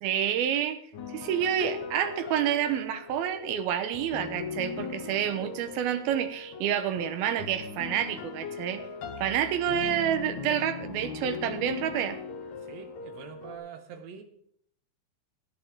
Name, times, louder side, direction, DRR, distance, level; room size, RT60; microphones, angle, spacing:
voice 1, 0.0-0.8 1.1-8.8 9.2-12.2, right 10 dB, 85° right, 10 dB, 2.8 m, -28 dB
sound 1, 0.9-13.6, left 5 dB, 60° left, 2.3 m, -39 dB
voice 2, 12.6-14.2, right 7 dB, 60° right, 6 dB, 2.1 m, -44 dB
17.0 x 10.5 x 3.6 m, 0.65 s
omnidirectional pair, 4.3 m